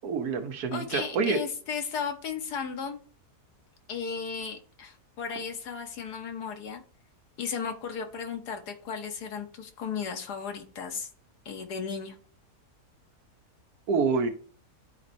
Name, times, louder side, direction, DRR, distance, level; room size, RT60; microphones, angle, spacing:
voice 1, 0.0-1.4 13.9-14.3, right 5 dB, 75° right, 1.4 m, -27 dB
voice 2, 0.7-3.0 3.9-6.8 7.4-11.1 11.4-12.2, left 6 dB, 85° left, 1.5 m, -35 dB
10.5 x 4.2 x 2.6 m
omnidirectional pair, 1.7 m